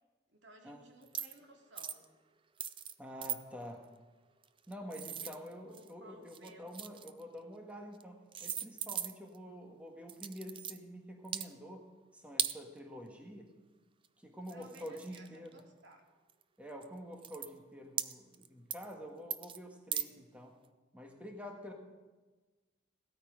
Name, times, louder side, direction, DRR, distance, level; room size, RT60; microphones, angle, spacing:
voice 1, 0.3-2.1 5.1-5.4 5.7-6.8 14.5-16.0, right 1 dB, 65° right, 2 dB, 2.5 m, -58 dB
sound 1, 1.1-1.4 1.7-2.0 2.6-2.9 3.2-3.4 4.4-5.9 6.3-7.2 7.9-8.0 8.3-9.4 10.1-10.8 11.2-11.5 12.4-12.6 14.0-14.1 14.5-15.6 16.3-16.4 16.8-16.9 17.2-17.5 18.0-18.5 18.7-18.9 19.3-19.6 19.9-20.1, right 9 dB, 25° right, 0.4 m, -38 dB
voice 2, 3.0-3.8 4.7-11.9 12.1-13.5 14.2-15.6 16.6-20.6 20.9-21.7, equal, 5° right, 2 dB, 1.6 m, -48 dB
17.0 x 13.0 x 5.1 m, 1.2 s
head